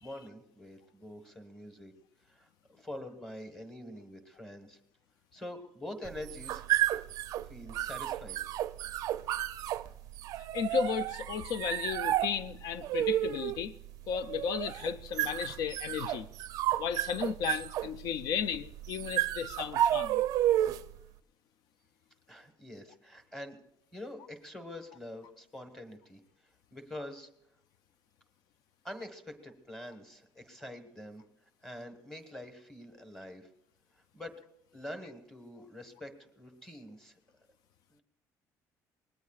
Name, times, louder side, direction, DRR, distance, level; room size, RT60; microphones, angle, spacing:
voice 1, 0.0-1.9 2.2-4.8 5.3-6.7 7.4-8.4 22.3-23.6 23.9-27.3 28.8-31.2 31.6-33.5 33.9-34.3 34.7-37.2 37.9-38.0, left 1 dB, 5° left, 1.3 m, -45 dB
sound 1, 6.1-21.0, right 13 dB, 60° right, 0.4 m, -32 dB
voice 2, 10.5-13.7 14.1-16.3 16.8-20.2, left 7 dB, 70° left, 0.5 m, -34 dB
24.0 x 19.5 x 2.4 m
cardioid pair, 175°, 7 cm